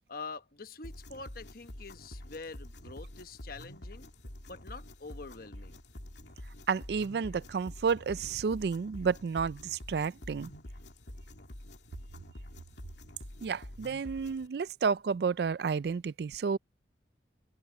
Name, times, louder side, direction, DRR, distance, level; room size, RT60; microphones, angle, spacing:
voice 1, 0.1-4.1 4.5-5.8, left 4 dB, 55° left, 1.1 m, -45 dB
sound 1, 0.8-14.5, left 1 dB, 75° left, 2.4 m, -47 dB
voice 2, 6.7-10.5 13.4-16.6, right 5 dB, 60° right, 0.4 m, -31 dB
open air
head